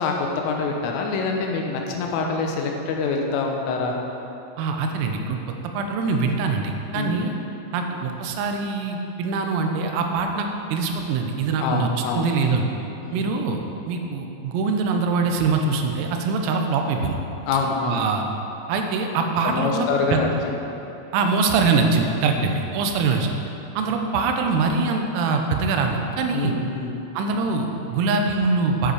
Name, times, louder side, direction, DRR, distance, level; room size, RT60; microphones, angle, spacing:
voice 1, 0.0-4.0 6.9-7.1 11.6-12.3 13.0-13.3 17.5-18.1 19.4-20.3 22.2-22.4 26.3-26.9, left 4 dB, 80° left, 1 dB, 3.4 m, -25 dB
voice 2, 4.6-5.4 5.7-7.3 7.7-12.7 13.1-13.6 13.9-17.2 17.9-18.2 18.7-20.2 21.1-23.3 23.8-26.5 27.1-28.9, right 4 dB, 90° right, 4 dB, 3.5 m, -23 dB
10.5 x 7.7 x 4.8 m, 2.9 s
omnidirectional pair, 5.9 m